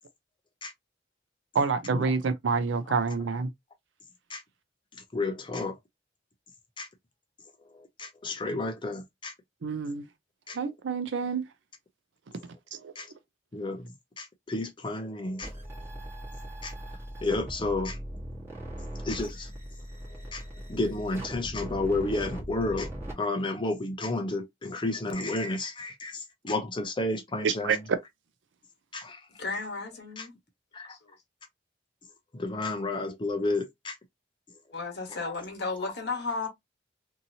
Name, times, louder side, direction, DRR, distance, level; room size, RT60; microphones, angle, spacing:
voice 1, 1.5-3.5 9.6-10.1 10.5-11.4 12.7-12.9 27.4-27.8, right 5 dB, 75° right, 0.5 m, -27 dB
voice 2, 4.9-5.8 6.8-6.9 7.6-9.3 10.5-10.6 13.0-13.1 13.5-15.9 16.6-16.7 17.2-18.0 19.0-19.5 20.0-20.4 20.7-22.9 23.2-27.8 28.9-29.3 30.2-30.3 30.7-31.0 32.3-34.0 35.1-35.4 35.8-35.9, left 2 dB, 25° left, 0.5 m, -32 dB
sound 1, 15.4-23.1, right 1 dB, 15° right, 1.2 m, -40 dB
voice 3, 29.4-30.3 30.9-31.0 34.7-36.5, left 3 dB, 65° left, 1.2 m, -33 dB
2.7 x 2.7 x 2.7 m
head